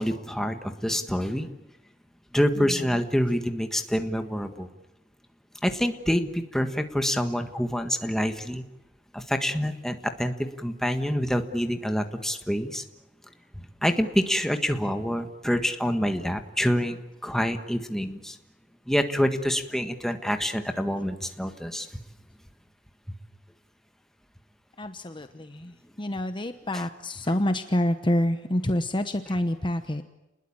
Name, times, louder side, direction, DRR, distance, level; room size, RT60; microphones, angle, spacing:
voice 1, 0.0-1.5 2.3-4.7 5.6-8.6 9.1-12.8 13.8-18.4 18.9-21.9, equal, ahead, 6 dB, 1.6 m, -27 dB
voice 2, 2.6-3.0 24.8-30.0, left 1 dB, 25° left, 8 dB, 1.0 m, -28 dB
30.0 x 21.0 x 8.8 m, 0.97 s
head